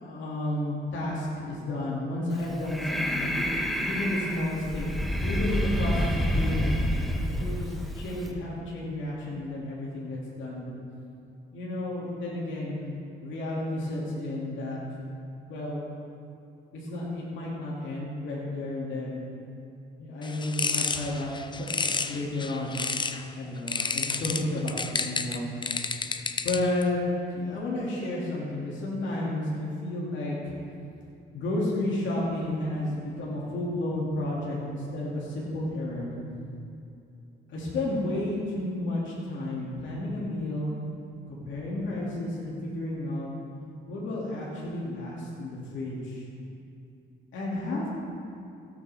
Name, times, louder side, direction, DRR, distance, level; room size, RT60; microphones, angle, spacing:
voice 1, 0.0-3.4 3.8-4.9 5.2-6.7 7.3-10.7 11.5-12.9 13.2-14.8 15.5-15.8 16.7-19.2 20.0-22.8 23.3-25.5 26.4-27.0 27.3-30.6 31.3-36.2 37.5-40.7 41.3-43.3 43.9-46.2 47.3-47.9, left 1 dB, 70° left, -5 dB, 2.5 m, -32 dB
Breathing, 2.3-8.3, equal, ahead, 1.3 m, -29 dB
sound 1, 20.2-23.2 23.7-26.8, left 4 dB, 25° left, 0.5 m, -31 dB
16.0 x 8.5 x 3.5 m, 2.6 s
cardioid pair, 90°, 20 cm